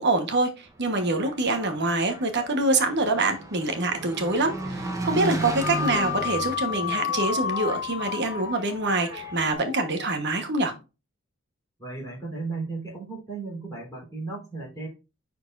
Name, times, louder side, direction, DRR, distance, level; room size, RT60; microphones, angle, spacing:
voice 1, 0.0-10.7, right 2 dB, 55° right, 1.3 m, -25 dB
Engine, 0.7-9.5, right 2 dB, 15° right, 1.0 m, -35 dB
sound 1, 5.6-10.1, left 8 dB, 50° left, 0.4 m, -31 dB
voice 2, 11.8-14.9, right 3 dB, 15° left, 3.6 m, -35 dB
9.9 x 4.5 x 2.6 m
head